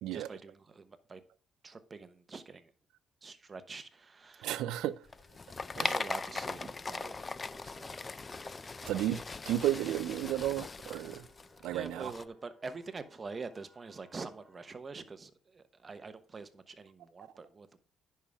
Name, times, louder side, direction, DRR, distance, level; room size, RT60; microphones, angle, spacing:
voice 1, 0.1-1.2 1.6-2.7 3.2-4.6 5.7-8.9 11.7-17.8, right 4 dB, 35° right, 1.0 m, -46 dB
voice 2, 4.4-5.0 5.8-6.0 8.9-9.2 9.5-11.3 11.6-12.1, right 13 dB, 90° right, 0.5 m, -33 dB
sound 1, 4.9-14.7, left 1 dB, ahead, 4.2 m, -63 dB
sound 2, 5.1-12.2, left 4 dB, 30° left, 0.4 m, -40 dB
10.0 x 5.7 x 3.5 m
cardioid pair, 90°, 0 cm